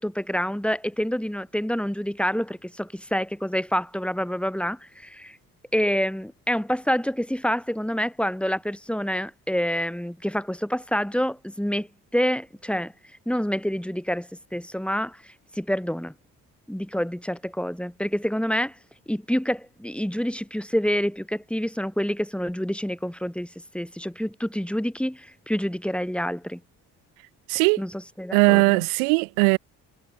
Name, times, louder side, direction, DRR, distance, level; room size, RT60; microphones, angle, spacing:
voice 1, 0.0-5.4 5.7-11.9 12.1-12.9 13.3-16.1 16.7-18.8 19.1-23.5 23.7-26.6 27.8-28.8, equal, 5° left, 5.3 m, -27 dB
voice 2, 27.5-27.8 28.3-29.6, right 40 dB or more, 85° right, 1.1 m, -19 dB
hypercardioid pair, 50°, 43 cm